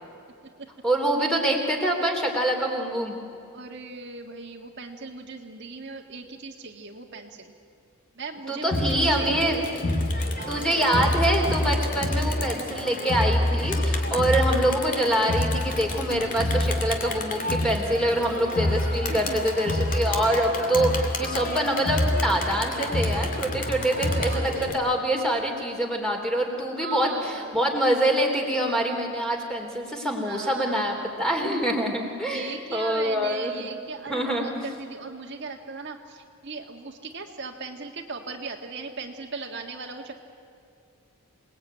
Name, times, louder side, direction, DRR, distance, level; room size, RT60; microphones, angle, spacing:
voice 1, 0.8-3.1 8.5-9.6 10.5-33.7 34.1-34.6, right 1 dB, 5° left, 1 dB, 3.4 m, -25 dB
voice 2, 3.5-7.5 8.2-9.7 10.4-11.1 19.1-19.5 23.8-24.8 26.8-27.6 30.2-31.1 32.3-40.1, right 4 dB, 50° right, 2 dB, 1.7 m, -38 dB
Crowd, 8.7-24.7, left 1 dB, 40° left, 2.5 m, -27 dB
28.0 x 20.0 x 9.1 m, 2.5 s
head